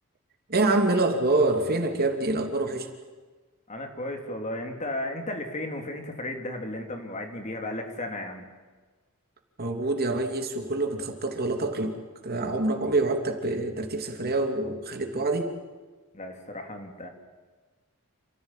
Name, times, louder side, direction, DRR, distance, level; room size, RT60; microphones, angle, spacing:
voice 1, 0.5-2.9 9.6-12.0 12.2-15.5, right 2 dB, 45° right, 5 dB, 2.8 m, -26 dB
voice 2, 3.7-8.5 16.1-17.1, left 1 dB, 35° left, 4 dB, 3.2 m, -34 dB
28.5 x 15.5 x 9.1 m, 1.4 s
head